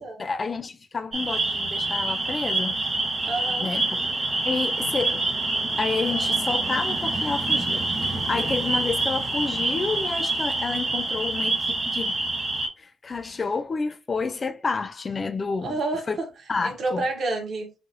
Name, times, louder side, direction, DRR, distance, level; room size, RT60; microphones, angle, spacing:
voice 1, 0.2-2.8 3.6-4.0 4.4-5.3 5.8-12.2 12.8-15.8 16.1-16.2 16.5-17.0, left 4 dB, 35° left, 0.4 m, -29 dB
sound 1, 1.1-12.7, right 2 dB, 30° right, 1.2 m, -26 dB
voice 2, 3.2-3.7 15.6-16.3 16.6-17.7, right 2 dB, 55° right, 0.9 m, -29 dB
4.8 x 2.0 x 2.6 m
cardioid pair, 90°, 0 cm